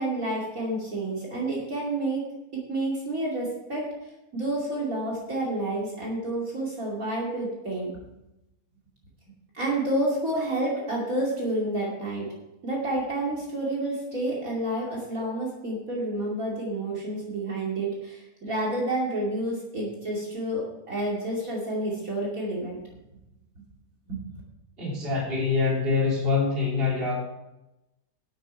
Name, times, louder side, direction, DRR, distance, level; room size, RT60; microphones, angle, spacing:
voice 1, 0.0-2.2 2.5-3.9 4.3-7.9 9.5-12.3 12.6-22.8 24.1-24.2, right 1 dB, 55° right, -4 dB, 3.0 m, -29 dB
voice 2, 24.8-27.2, left 4 dB, 35° right, -3 dB, 3.2 m, -25 dB
11.5 x 8.6 x 4.6 m, 0.93 s
omnidirectional pair, 1.7 m